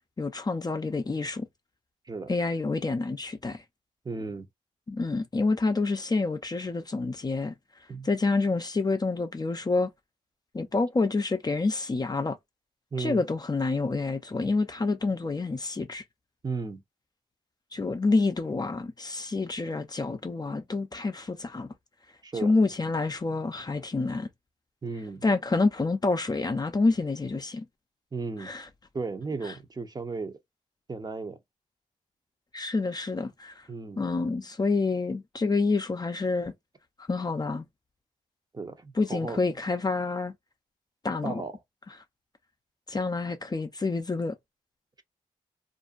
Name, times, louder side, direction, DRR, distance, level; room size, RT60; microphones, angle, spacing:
voice 1, 0.2-1.5 2.3-3.6 4.9-7.5 8.0-9.9 10.5-12.4 13.0-16.0 17.7-21.7 22.4-24.3 25.2-27.7 28.4-28.7 29.4-29.5 32.5-33.7 34.0-36.5 37.1-37.7 39.0-40.3 41.0-41.4 42.9-44.4, left 3 dB, 30° left, 0.5 m, -28 dB
voice 2, 4.0-4.5 7.9-8.1 12.9-13.2 16.4-16.8 22.2-22.5 24.8-25.2 28.1-28.5 28.9-30.4 30.9-31.4 33.7-34.0 38.5-39.4 41.2-41.6, right 4 dB, 30° right, 0.7 m, -35 dB
2.5 x 2.1 x 2.4 m
cardioid pair, 60°, 14 cm